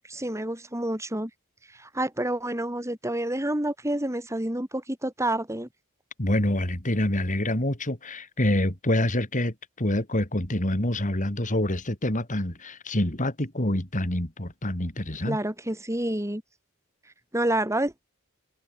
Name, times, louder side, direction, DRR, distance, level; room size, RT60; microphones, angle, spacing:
voice 1, 0.1-1.3 1.8-5.7 15.3-16.4 17.3-18.1, right 1 dB, 15° right, 4.5 m, -28 dB
voice 2, 6.2-15.4, left 1 dB, 35° left, 4.0 m, -26 dB
head